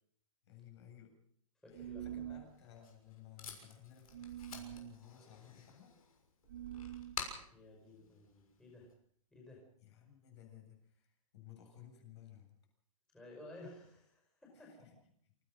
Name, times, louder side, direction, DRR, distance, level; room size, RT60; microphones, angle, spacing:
voice 1, 0.4-1.2 1.6-5.9 9.8-12.6 14.5-15.0, left 10 dB, 50° left, 4 dB, 7.8 m, -57 dB
voice 2, 1.6-2.4 7.5-8.9 9.3-9.7 13.1-14.9, left 1 dB, 5° left, -2 dB, 5.2 m, -54 dB
sound 1, 1.7-2.5 4.1-4.9 6.5-7.2, right 11 dB, 40° right, 0.9 m, -45 dB
Packing tape duct tape, 2.4-8.9, left 6 dB, 75° left, 6.6 m, -50 dB
29.0 x 16.0 x 6.4 m, 0.65 s
hypercardioid pair, 170°, 19 cm